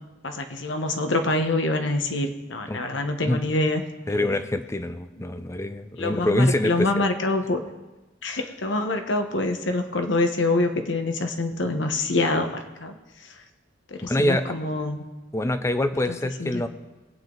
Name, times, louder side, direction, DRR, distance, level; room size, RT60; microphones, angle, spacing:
voice 1, 0.2-3.8 4.1-4.2 6.0-7.6 8.2-12.9 13.9-15.0 16.1-16.6, left 2 dB, 80° left, 6 dB, 1.2 m, -26 dB
voice 2, 4.1-7.1 14.0-14.5 15.3-16.7, left 1 dB, 15° left, 10 dB, 0.6 m, -25 dB
21.0 x 9.1 x 3.9 m, 1.1 s
head